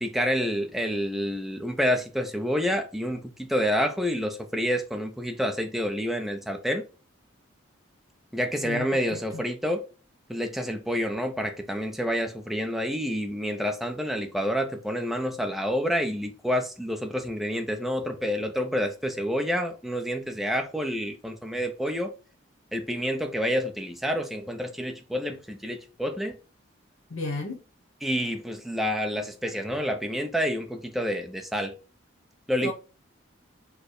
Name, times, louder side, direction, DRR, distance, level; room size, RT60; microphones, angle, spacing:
voice 1, 0.0-6.9 8.3-9.9 10.3-22.1 22.7-26.4 28.0-31.7 32.5-32.7, equal, ahead, 0.6 m, -28 dB
voice 2, 8.6-9.4 27.1-27.6 32.6-32.7, left 2 dB, 90° left, 1.0 m, -34 dB
4.5 x 2.2 x 4.7 m
head